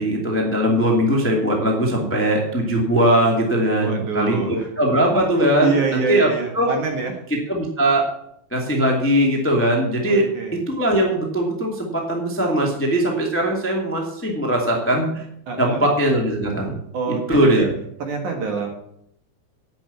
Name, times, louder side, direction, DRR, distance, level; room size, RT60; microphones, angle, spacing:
voice 1, 0.0-6.3 6.5-6.7 7.5-8.1 8.5-10.3 10.5-15.2 15.6-16.8 17.1-17.7, right 1 dB, 5° left, 0 dB, 1.0 m, -20 dB
voice 2, 3.8-4.7 5.6-7.2 10.1-10.6 15.5-15.9 16.9-17.7 18.0-18.7, right 5 dB, 60° right, 3 dB, 2.5 m, -26 dB
9.9 x 7.6 x 8.3 m, 0.74 s
omnidirectional pair, 4.7 m